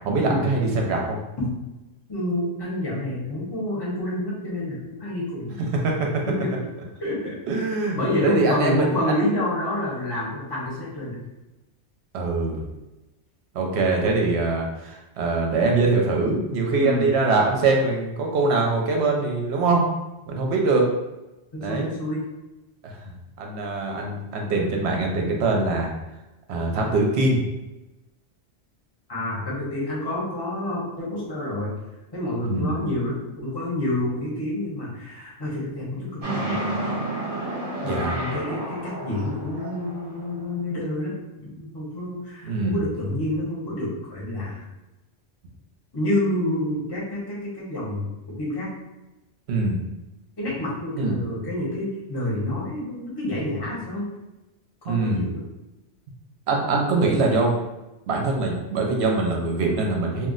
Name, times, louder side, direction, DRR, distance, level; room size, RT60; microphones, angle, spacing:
voice 1, 0.0-1.2 5.7-6.2 7.5-9.2 12.1-12.7 13.5-19.8 20.3-20.9 21.6-21.9 22.8-23.1 23.4-25.9 26.5-27.4 32.4-32.8 37.8-38.2 42.4-42.8 49.5-49.8 50.9-51.2 54.8-55.2 56.5-57.6 58.1-60.3, right 3 dB, 70° right, 1 dB, 0.8 m, -23 dB
voice 2, 2.1-5.6 6.4-6.5 7.0-7.4 8.0-11.2 16.8-17.1 21.5-22.2 29.1-31.7 32.1-36.7 37.8-41.2 41.4-44.6 45.9-48.7 50.4-54.1 54.9-55.4, left 1 dB, 25° left, -5 dB, 0.7 m, -28 dB
sound 1, 36.2-40.4, right 1 dB, 35° right, 0.9 m, -30 dB
2.4 x 2.0 x 3.7 m, 1.0 s
omnidirectional pair, 1.2 m